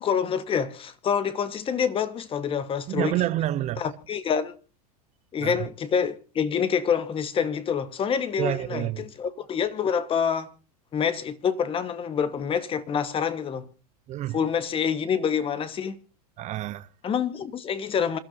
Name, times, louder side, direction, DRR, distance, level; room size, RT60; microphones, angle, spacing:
voice 1, 0.0-3.2 3.8-4.5 5.3-10.5 10.9-13.7 14.3-16.0 17.0-18.2, left 7 dB, 25° left, 1.3 m, -27 dB
voice 2, 2.9-3.8 5.4-5.7 8.4-9.1 14.1-14.4 16.4-16.9, right 14 dB, 35° right, 0.7 m, -28 dB
27.0 x 12.5 x 2.6 m
supercardioid pair, 120°, 20 cm